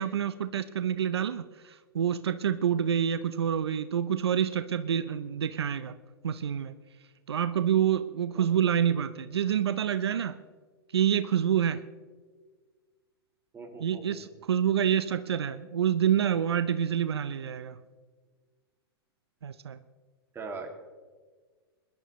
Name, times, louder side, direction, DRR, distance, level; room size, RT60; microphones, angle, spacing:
voice 1, 0.0-5.9 6.2-6.7 7.3-10.4 10.9-11.8 13.8-17.8 19.4-19.8, right 9 dB, 85° right, 12 dB, 0.6 m, -27 dB
voice 2, 13.5-14.2 20.3-20.7, right 4 dB, 20° right, 2 dB, 2.4 m, -41 dB
22.5 x 11.5 x 3.1 m, 1.4 s
hypercardioid pair, 115°, 13 cm